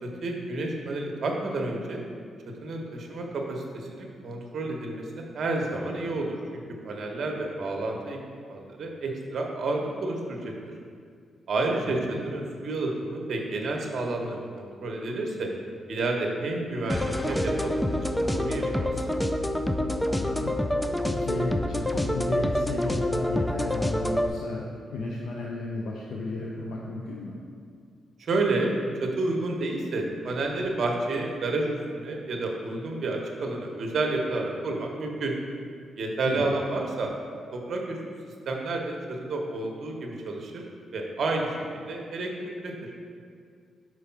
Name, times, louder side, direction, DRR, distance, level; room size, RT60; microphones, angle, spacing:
voice 1, 0.0-2.0 2.6-8.2 8.5-10.5 11.5-15.5 15.9-19.1 28.2-35.3 36.0-37.1 37.5-38.0 38.5-40.6 40.9-42.9, right 2 dB, 55° right, 1 dB, 0.9 m, -30 dB
voice 2, 11.8-12.2 20.1-27.3 36.2-36.5, left 2 dB, 85° left, -3 dB, 0.6 m, -34 dB
sound 1, 16.9-24.3, left 1 dB, 5° left, 0.3 m, -27 dB
5.0 x 4.6 x 5.7 m, 2.2 s
cardioid pair, 140°, 0 cm